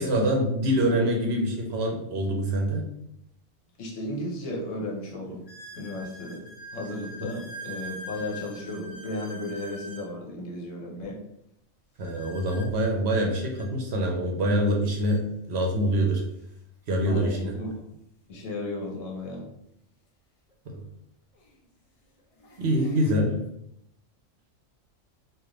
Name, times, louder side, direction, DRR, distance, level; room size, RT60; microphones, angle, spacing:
voice 1, 0.0-2.9 7.2-7.3 12.0-16.2 16.9-17.5 20.7-20.8 22.6-23.4, right 1 dB, 60° right, 1 dB, 0.8 m, -25 dB
sound 1, 3.7-3.8 4.5-4.6 5.5-10.1 12.0-13.7 14.7-14.8 15.0-15.2 16.0-16.1 18.3-18.4 20.5-20.6 21.3-21.6 22.2-23.1, equal, 45° left, 0.4 m, -44 dB
voice 2, 3.8-5.4 5.7-6.4 6.7-11.2 17.1-17.8 18.3-19.4, left 1 dB, 75° left, 0 dB, 1.2 m, -34 dB
3.3 x 2.5 x 3.7 m, 0.76 s
omnidirectional pair, 1.3 m